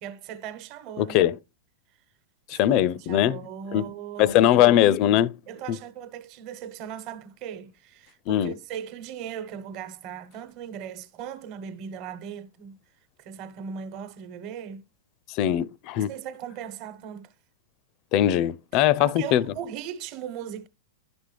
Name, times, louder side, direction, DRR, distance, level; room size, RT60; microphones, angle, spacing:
voice 1, 0.0-1.2 2.5-4.7 5.5-12.8 13.2-14.9 15.9-17.3 18.7-20.7, right 8 dB, 45° right, 1.1 m, -38 dB
voice 2, 1.0-1.4 2.5-3.4 3.7-3.9 4.2-5.4 5.7-5.8 8.3-8.5 15.3-16.1 18.1-19.4, left 12 dB, 45° left, 0.4 m, -21 dB
11.0 x 6.0 x 3.4 m
hypercardioid pair, 110°, 0 cm